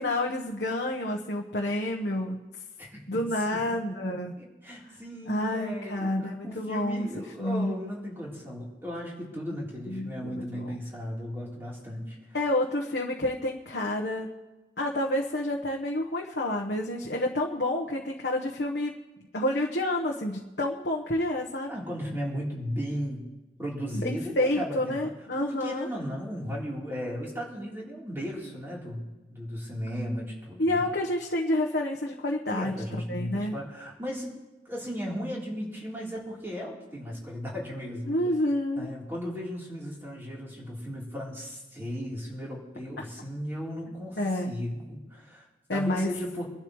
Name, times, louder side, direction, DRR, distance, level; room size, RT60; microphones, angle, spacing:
voice 1, 0.0-2.4 3.1-4.3 5.3-7.1 7.4-7.7 9.9-10.8 12.3-14.3 14.8-19.0 19.3-21.7 23.9-25.9 30.6-32.7 33.1-33.5 38.1-38.9 44.2-44.5 45.7-46.2, left 1 dB, 65° left, -2 dB, 1.2 m, -29 dB
voice 2, 2.8-4.0 4.4-12.2 21.7-23.2 23.6-25.0 25.4-29.0 29.3-30.8 32.5-34.3 34.7-38.2 38.8-46.5, equal, 15° right, -4 dB, 3.7 m, -36 dB
24.5 x 12.0 x 3.2 m, 1.1 s
head